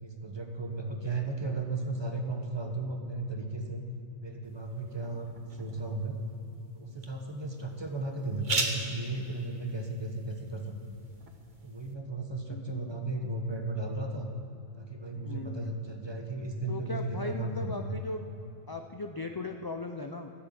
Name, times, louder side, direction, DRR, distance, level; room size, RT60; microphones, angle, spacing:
voice 1, 0.0-3.8 4.2-6.2 6.7-11.0 11.6-14.3 14.7-18.0, right 2 dB, 20° right, 2 dB, 1.2 m, -35 dB
sound 1, 4.4-11.9, right 3 dB, 40° right, 1.3 m, -40 dB
voice 2, 12.5-12.9 15.2-15.8 16.7-18.2 18.7-20.3, left 3 dB, 35° left, 4 dB, 0.3 m, -38 dB
14.5 x 7.7 x 8.7 m, 2.9 s
omnidirectional pair, 1.3 m